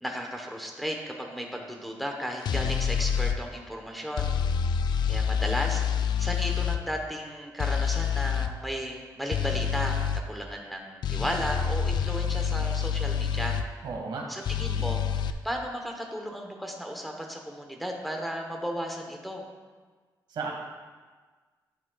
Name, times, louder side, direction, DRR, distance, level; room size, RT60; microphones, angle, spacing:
voice 1, 0.0-4.3 5.1-10.0 10.3-13.6 14.3-19.5, equal, ahead, 1 dB, 1.0 m, -34 dB
sound 1, 2.4-3.4 4.2-6.8 7.6-8.5 9.3-10.2 11.0-13.7 14.4-15.3, left 7 dB, 70° left, 0.4 m, -27 dB
voice 2, 13.8-14.2 20.3-20.5, right 4 dB, 80° right, 0 dB, 1.6 m, -33 dB
10.5 x 8.4 x 2.4 m, 1.4 s
wide cardioid pair, 120°, 8 cm